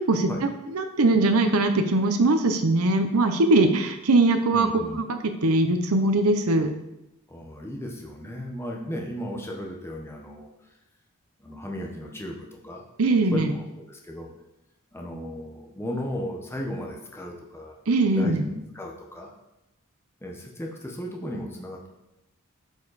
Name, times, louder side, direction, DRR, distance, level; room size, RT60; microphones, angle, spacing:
voice 1, 0.7-4.7 5.1-6.7 13.0-13.5 17.9-18.4, right 2 dB, 80° right, 6 dB, 0.8 m, -21 dB
voice 2, 4.5-5.0 7.3-10.5 11.4-12.8 13.3-14.3 14.9-17.8 18.1-19.3 20.2-21.9, equal, 10° left, 0 dB, 1.0 m, -35 dB
11.5 x 5.4 x 4.1 m, 0.91 s
head